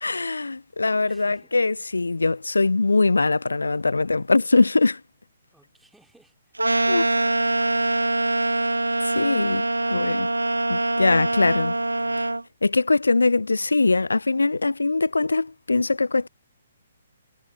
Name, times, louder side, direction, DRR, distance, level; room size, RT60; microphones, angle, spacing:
voice 1, 0.0-5.0 6.9-7.0 9.0-9.6 9.9-10.3 10.7-11.7 12.6-16.3, left 3 dB, 70° left, 0.4 m, -22 dB
voice 2, 1.1-1.5 5.5-8.2, right 2 dB, 5° right, 3.5 m, -56 dB
sound 1, 6.6-12.4, right 2 dB, 80° right, 0.5 m, -23 dB
figure-of-eight pair, 130°, 0 cm